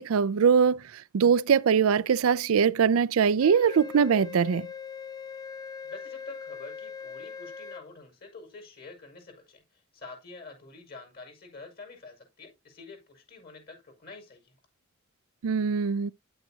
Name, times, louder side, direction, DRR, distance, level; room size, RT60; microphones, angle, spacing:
voice 1, 0.0-4.7 15.4-16.1, right 6 dB, 85° right, 0.4 m, -22 dB
Wind instrument woodwind instrument, 3.4-7.9, left 6 dB, 20° left, 0.6 m, -41 dB
voice 2, 5.8-14.5, left 3 dB, 50° left, 5.2 m, -47 dB
9.9 x 8.8 x 2.8 m
head